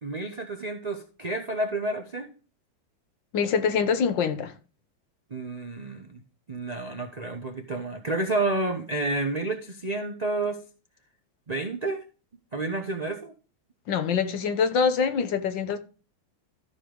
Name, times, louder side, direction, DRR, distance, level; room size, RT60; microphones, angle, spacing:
voice 1, 0.0-2.3 5.3-6.2 6.5-10.6 11.5-12.0 12.5-13.3, right 2 dB, 60° right, 0.4 m, -30 dB
voice 2, 3.3-4.5 13.9-15.8, left 6 dB, 65° left, 1.6 m, -24 dB
13.5 x 5.2 x 3.8 m
omnidirectional pair, 2.2 m